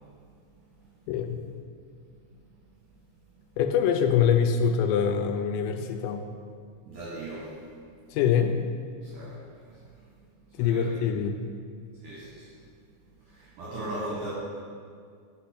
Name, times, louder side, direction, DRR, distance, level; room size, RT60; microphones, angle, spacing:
voice 1, 1.1-1.4 3.6-6.3 8.1-8.6 10.5-11.4, left 7 dB, 85° left, 7 dB, 2.8 m, -24 dB
voice 2, 6.9-7.6 9.0-10.0 10.5-11.0 12.0-12.5 13.2-14.3, right 1 dB, 70° right, -7 dB, 2.0 m, -39 dB
6.1 x 4.3 x 5.7 m, 2.1 s
omnidirectional pair, 5.2 m